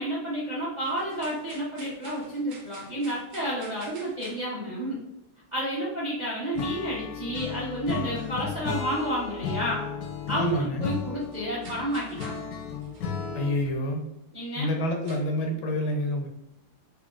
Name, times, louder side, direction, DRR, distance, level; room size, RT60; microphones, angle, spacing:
voice 1, 0.0-5.0 5.5-9.8 10.3-12.4 14.3-14.7, right 1 dB, 75° right, -7 dB, 0.4 m, -30 dB
sound 1, 0.8-4.9 9.7-9.8 10.4-10.5 11.2-12.5 12.8-13.2 14.2-14.4 15.0-15.2, right 3 dB, 90° right, 1.5 m, -49 dB
Acoustic guitar / Strum, 6.5-13.7, left 6 dB, 70° left, 0.9 m, -34 dB
voice 2, 10.3-10.9 13.3-14.0 14.6-16.3, left 1 dB, 85° left, 3 dB, 1.4 m, -28 dB
4.1 x 2.2 x 2.3 m, 0.92 s
omnidirectional pair, 2.1 m